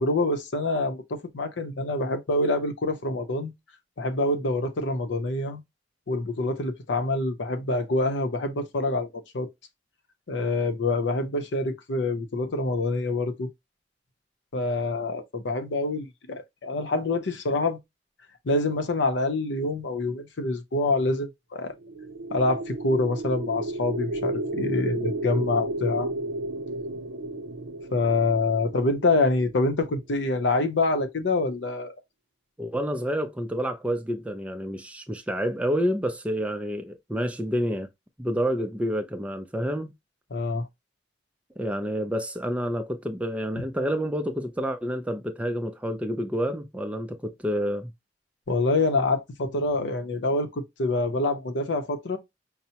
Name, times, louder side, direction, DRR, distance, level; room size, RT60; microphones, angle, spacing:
voice 1, 0.0-3.5 4.0-5.6 6.1-9.5 10.3-13.5 14.5-17.8 18.4-21.7 22.3-26.1 27.9-31.9 40.3-40.7 48.5-52.2, left 2 dB, 80° left, 0.6 m, -26 dB
sound 1, 21.8-29.9, right 2 dB, 85° right, 0.5 m, -33 dB
voice 2, 32.6-37.9 38.2-39.9 41.6-47.9, equal, 5° right, 0.3 m, -28 dB
5.5 x 2.0 x 2.8 m
head